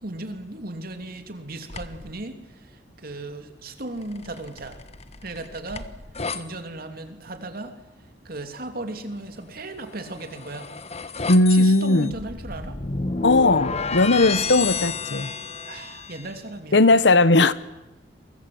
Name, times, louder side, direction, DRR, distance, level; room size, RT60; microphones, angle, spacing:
voice 1, 0.0-4.8 5.2-5.9 6.3-7.7 8.2-10.7 11.5-12.8 15.6-16.9, right 2 dB, 55° right, 7 dB, 2.9 m, -36 dB
sound 1, 1.7-2.1 4.0-6.4 9.9-16.3, left 4 dB, 35° left, 1.4 m, -31 dB
voice 2, 11.3-12.1 13.2-15.3 16.7-17.5, left 2 dB, 70° left, 16 dB, 1.1 m, -17 dB
29.0 x 24.0 x 7.9 m, 0.95 s
head